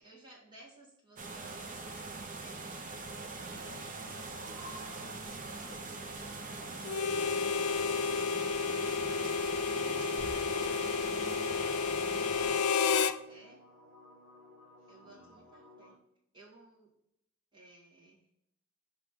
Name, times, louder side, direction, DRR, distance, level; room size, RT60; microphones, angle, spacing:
voice 1, 0.0-2.7 3.5-4.2 5.8-7.1 8.7-9.7 13.3-13.6 14.9-16.0 16.3-16.9 17.5-18.2, right 2 dB, 20° right, -4 dB, 1.7 m, -58 dB
sound 1, 1.2-12.6, right 3 dB, 40° right, 0.8 m, -42 dB
voice 2, 3.5-7.1 9.7-12.4 15.0-15.4, equal, 40° left, -3 dB, 1.7 m, -54 dB
Harmonica, 6.8-13.2, left 5 dB, 90° left, 0.4 m, -31 dB
sound 2, 10.0-15.9, left 2 dB, ahead, 1.7 m, -54 dB
6.0 x 3.3 x 5.2 m, 0.77 s
head